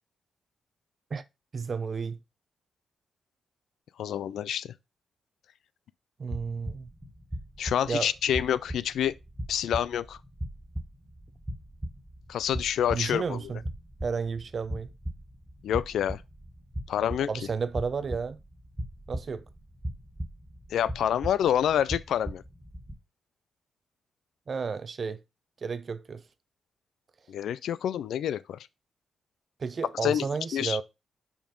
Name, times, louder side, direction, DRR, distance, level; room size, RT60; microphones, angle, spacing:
voice 1, 1.5-2.2 6.2-6.9 7.9-8.1 12.9-13.6 14.0-14.9 17.3-18.4 19.1-19.4 24.5-25.2 25.6-26.2 29.6-30.8, right 5 dB, 50° right, 0.7 m, -32 dB
voice 2, 4.0-4.7 7.6-9.2 9.5-10.2 12.3-13.4 15.6-16.2 16.9-17.3 20.7-22.4 27.3-28.6 30.0-30.2 30.5-30.8, left 10 dB, 80° left, 0.4 m, -27 dB
sound 1, 6.3-22.9, equal, 15° right, 1.6 m, -39 dB
5.8 x 4.3 x 5.2 m
cardioid pair, 65°, 0 cm